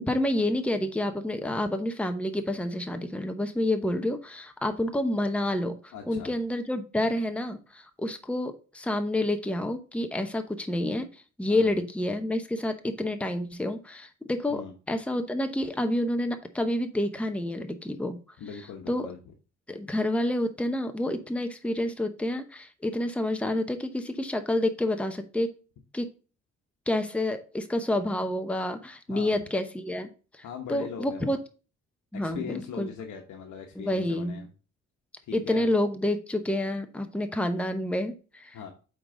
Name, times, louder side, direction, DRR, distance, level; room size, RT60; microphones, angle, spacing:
voice 1, 0.0-14.6 14.9-18.2 18.9-19.1 19.7-25.5 25.9-26.1 26.9-30.1 30.3-31.4 32.1-32.9 33.8-34.4 35.3-38.6, left 1 dB, 5° left, 7 dB, 0.9 m, -29 dB
voice 2, 5.9-6.3 11.5-11.8 14.5-14.7 18.4-19.2 29.1-29.3 30.4-31.3 32.2-34.5 35.2-35.6 38.5-38.7, left 7 dB, 75° left, 3 dB, 1.1 m, -40 dB
8.5 x 3.9 x 3.8 m, 0.34 s
cardioid pair, 90°, 30 cm